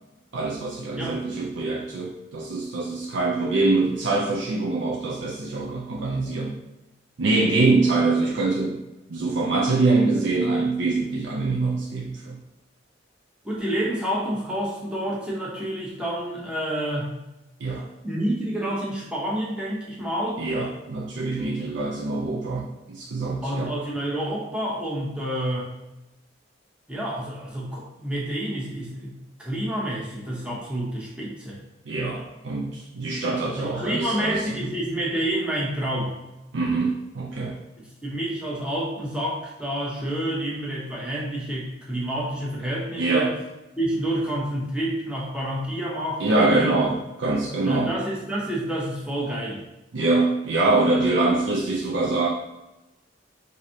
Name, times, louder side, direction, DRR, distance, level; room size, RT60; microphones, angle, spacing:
voice 1, 0.3-6.5 7.2-8.8 9.1-12.4 17.6-17.9 20.4-23.7 31.9-34.4 36.5-37.5 43.0-43.4 46.2-47.9 49.9-52.3, right 3 dB, 65° right, -2 dB, 0.4 m, -24 dB
voice 2, 13.4-17.1 18.0-20.4 23.4-25.7 26.9-31.6 33.5-36.1 37.8-43.3 43.8-46.9 47.6-49.6, right 1 dB, 5° right, -5 dB, 0.9 m, -28 dB
4.7 x 2.6 x 2.8 m, 0.99 s
head